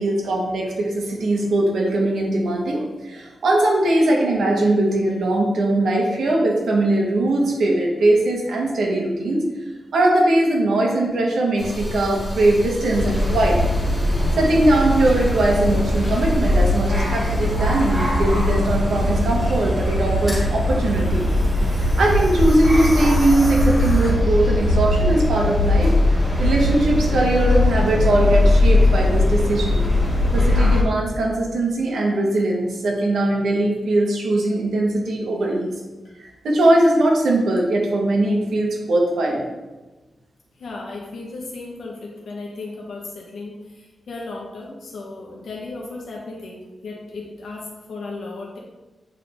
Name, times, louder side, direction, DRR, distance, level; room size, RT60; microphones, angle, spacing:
voice 1, 0.0-9.4 9.9-13.6 14.0-21.3 21.6-29.8 30.3-35.7 36.2-39.4, right 1 dB, 85° right, -1 dB, 1.5 m, -20 dB
sound 1, 11.6-24.1, left 1 dB, 10° left, 2.0 m, -30 dB
sound 2, 12.9-30.8, left 1 dB, 15° right, 1.7 m, -20 dB
voice 2, 40.5-48.6, left 3 dB, 65° left, -1 dB, 1.5 m, -35 dB
8.4 x 3.8 x 3.7 m, 1.2 s
wide cardioid pair, 180°, 0 cm